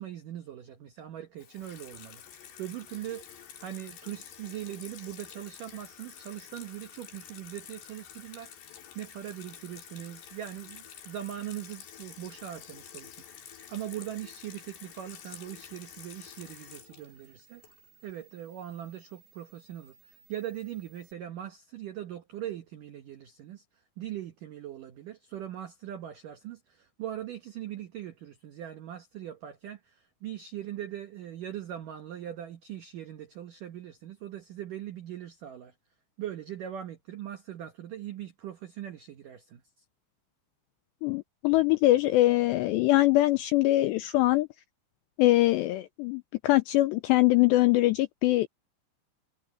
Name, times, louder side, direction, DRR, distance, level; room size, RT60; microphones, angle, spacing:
voice 1, 0.0-2.2 2.6-8.5 9.0-17.6 18.0-23.6 24.0-35.7 36.2-39.6, right 11 dB, 85° right, 1.9 m, -40 dB
Water tap faucet / Sink (filling or washing), 1.4-18.1, left 9 dB, 60° left, 4.6 m, -49 dB
sound 1, 14.8-21.1, right 7 dB, 15° right, 7.5 m, -62 dB
voice 2, 41.0-44.5 45.2-48.5, left 17 dB, 90° left, 2.4 m, -23 dB
omnidirectional pair, 5.8 m